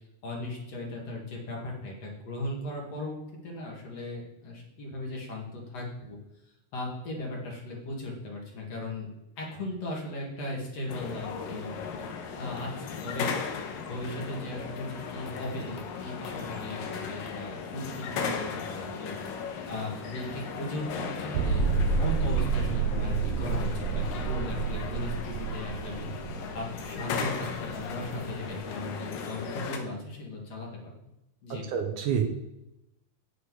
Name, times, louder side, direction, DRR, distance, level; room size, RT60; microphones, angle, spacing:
voice 1, 0.2-6.2 6.7-9.1 9.4-19.3 19.7-21.6 22.0-30.9 31.4-31.6, left 2 dB, 55° left, -2 dB, 2.8 m, -37 dB
sound 1, 10.9-29.8, left 6 dB, 85° left, 2.7 m, -37 dB
sound 2, 21.3-28.5, right 5 dB, 85° right, 2.4 m, -29 dB
voice 2, 31.5-32.2, right 8 dB, 70° right, 4 dB, 2.3 m, -28 dB
8.8 x 8.3 x 4.7 m, 0.88 s
omnidirectional pair, 3.9 m